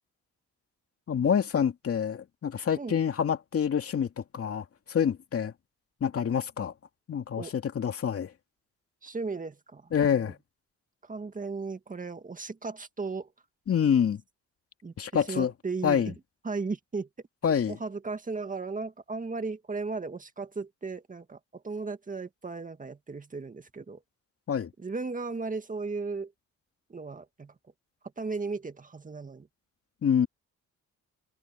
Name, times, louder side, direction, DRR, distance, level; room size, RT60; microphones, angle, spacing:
voice 1, 1.1-5.5 6.0-6.7 7.1-8.3 9.9-10.4 13.7-14.2 15.0-15.5 15.8-16.1 17.4-17.8 24.5-24.7 30.0-30.3, left 8 dB, 50° left, 2.5 m, -27 dB
voice 2, 9.0-10.3 11.0-13.3 14.8-14.9 15.3-16.1 16.4-17.1 17.7-24.0 24.8-26.3 26.9-27.5 28.2-29.5, right 4 dB, 25° right, 2.0 m, -36 dB
cardioid pair, 90°, 30 cm